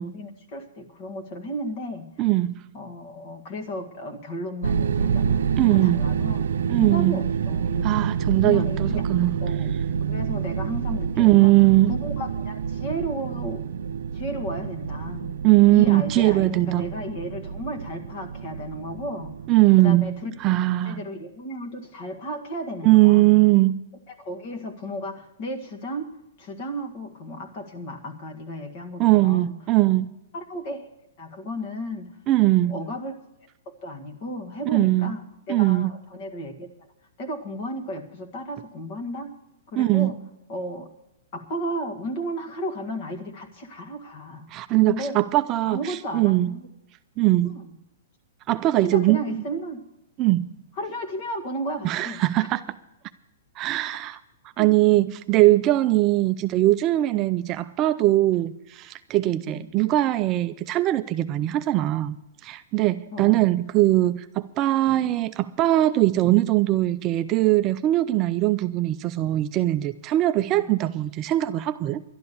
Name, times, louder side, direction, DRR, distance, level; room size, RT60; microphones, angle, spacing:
voice 1, 0.0-2.1 2.7-6.4 6.8-8.1 8.4-9.8 10.1-11.5 11.9-13.7 14.1-15.3 15.7-19.4 19.8-20.3 20.8-23.3 24.1-26.1 26.4-29.5 30.3-30.9 31.2-32.2 32.7-33.1 33.7-36.9 37.2-39.3 39.7-40.2 40.5-40.9 41.3-44.4 44.8-45.2 45.6-46.6 47.4-47.6 48.8-49.8 50.8-52.2 54.6-54.7 59.5-59.8 63.1-63.6 70.5-70.6, equal, 40° left, 1.8 m, -34 dB
voice 2, 2.2-2.5 5.6-6.1 6.7-7.2 7.8-9.4 11.2-11.9 15.4-16.8 19.5-20.1 20.4-21.0 22.8-23.8 29.0-30.1 32.3-32.7 34.7-35.2 35.5-35.9 39.8-40.1 44.5-46.5 47.2-47.6 48.5-49.2 50.2-50.5 51.8-52.6 53.6-54.2 54.6-62.2 62.4-72.0, right 16 dB, 25° right, 0.4 m, -20 dB
sound 1, 4.6-20.5, right 7 dB, 85° right, 0.6 m, -28 dB
12.0 x 10.5 x 6.9 m
hypercardioid pair, 160°, 0 cm